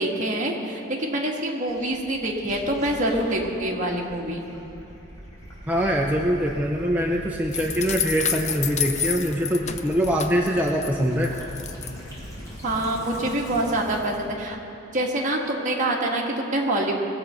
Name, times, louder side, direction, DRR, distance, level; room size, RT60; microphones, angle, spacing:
voice 1, 0.0-4.4 12.6-14.6 14.9-16.9, right 1 dB, 40° right, -1 dB, 1.6 m, -25 dB
Gurgling / Liquid, 1.7-14.3, equal, 15° left, 3.9 m, -41 dB
voice 2, 5.7-11.4, equal, 10° right, -1 dB, 0.6 m, -23 dB
sound 1, 7.5-10.9 11.2-11.9, left 8 dB, 35° left, 0.5 m, -29 dB
20.0 x 7.7 x 5.6 m, 2.8 s
head